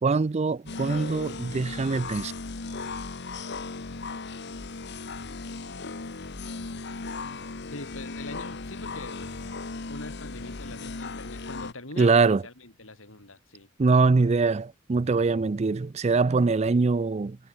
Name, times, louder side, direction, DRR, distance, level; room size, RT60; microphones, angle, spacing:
voice 1, 0.0-2.3 12.0-12.4 13.8-17.4, right 4 dB, 35° right, 0.4 m, -23 dB
sound 1, 0.7-11.7, left 3 dB, 60° left, 1.2 m, -37 dB
voice 2, 7.7-9.3 9.9-13.7, left 2 dB, 85° left, 6.5 m, -43 dB
head